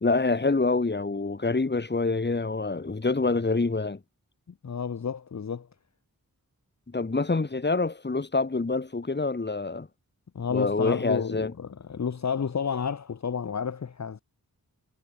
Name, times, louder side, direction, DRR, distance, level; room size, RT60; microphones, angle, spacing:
voice 1, 0.0-4.0 6.9-9.9 10.5-11.5, left 3 dB, 30° left, 1.2 m, -26 dB
voice 2, 4.6-5.7 10.3-14.2, left 6 dB, 50° left, 0.7 m, -31 dB
wide cardioid pair, 55°, 35 cm